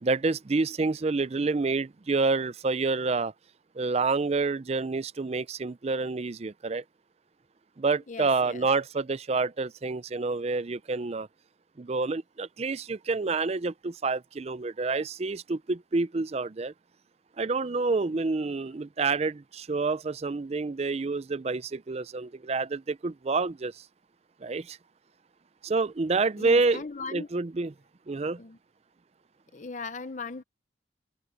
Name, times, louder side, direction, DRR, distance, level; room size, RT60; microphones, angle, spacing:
voice 1, 0.0-3.3 3.8-6.8 7.8-11.3 11.8-16.7 17.4-23.8 24.4-24.8 25.6-26.8 27.1-27.7 28.1-28.4, right 3 dB, 35° right, 0.4 m, -28 dB
voice 2, 8.1-8.7 26.4-27.3 28.4-28.6 29.5-30.4, left 4 dB, 40° left, 0.7 m, -38 dB
open air
head